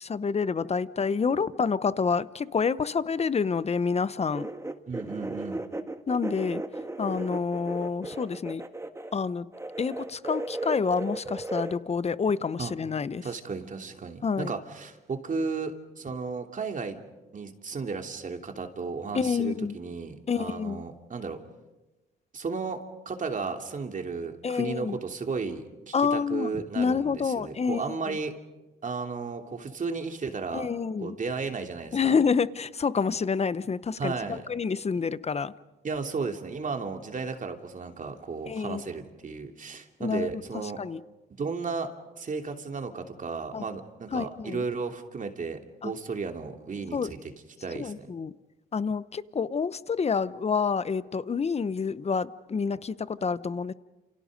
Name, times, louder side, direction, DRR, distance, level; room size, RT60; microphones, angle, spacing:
voice 1, 0.0-4.5 6.1-6.6 7.0-8.6 9.1-9.5 9.8-13.2 14.2-14.5 19.1-19.8 20.3-20.8 24.4-25.0 25.9-28.2 30.5-31.2 31.9-35.5 38.5-38.8 40.0-40.3 40.8-41.0 43.5-43.6 44.1-44.6 45.8-45.9 46.9-47.1 47.7-48.3 48.7-53.7, left 5 dB, 30° left, 16 dB, 0.9 m, -28 dB
sound 1, 4.3-9.2 9.5-11.8, right 2 dB, 15° right, 1.7 m, -35 dB
voice 2, 4.9-5.6 12.6-12.7 13.2-17.0 17.3-21.4 22.3-28.3 28.8-30.7 31.0-32.2 34.0-34.5 35.8-40.8 41.4-41.9 42.1-47.2 47.6-48.1, right 4 dB, 40° right, 4 dB, 2.9 m, -34 dB
29.5 x 29.0 x 5.3 m, 1.1 s
cardioid pair, 90°, 20 cm